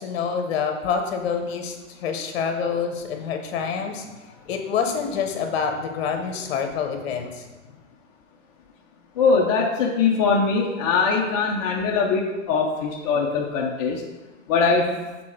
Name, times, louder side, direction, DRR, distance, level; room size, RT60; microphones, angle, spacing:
voice 1, 0.0-4.1 4.5-7.5, left 6 dB, 50° left, 5 dB, 1.0 m, -27 dB
voice 2, 9.2-14.0 14.5-15.0, left 4 dB, 30° left, -1 dB, 0.5 m, -21 dB
6.0 x 4.1 x 4.4 m, 1.2 s
hypercardioid pair, 150°, 39 cm